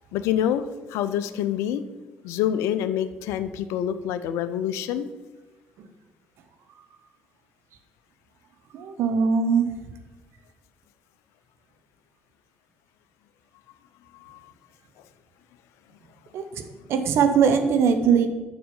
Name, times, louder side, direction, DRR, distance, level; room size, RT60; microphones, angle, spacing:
voice 1, 0.1-1.8 2.2-5.1 14.1-14.5, left 10 dB, 65° left, 13 dB, 0.4 m, -27 dB
voice 2, 8.7-9.7 16.3-16.4 16.9-18.3, right 6 dB, 60° right, 7 dB, 0.8 m, -20 dB
6.8 x 6.0 x 5.5 m, 1.2 s
figure-of-eight pair, 45°, 5 cm